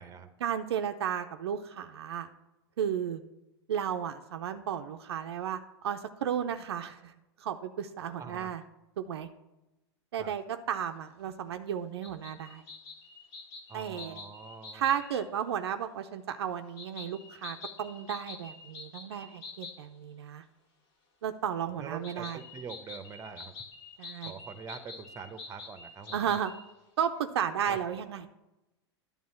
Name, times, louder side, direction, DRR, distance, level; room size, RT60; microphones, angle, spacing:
voice 1, 0.4-2.3 2.8-3.2 3.7-7.1 7.4-8.6 9.0-9.3 10.1-12.6 13.7-14.2 14.7-20.4 21.2-22.4 24.0-24.3 26.1-26.5 27.0-28.3, right 9 dB, 70° right, 7 dB, 0.6 m, -33 dB
voice 2, 8.2-8.5 10.2-10.3 13.7-14.9 21.8-23.5 24.2-26.3 27.7-27.8, right 5 dB, 20° right, 10 dB, 0.9 m, -44 dB
sound 1, 12.0-15.2 16.8-19.8 22.0-26.7, left 4 dB, 55° left, 1.6 m, -47 dB
10.5 x 3.6 x 7.3 m, 0.95 s
figure-of-eight pair, 90°, 14 cm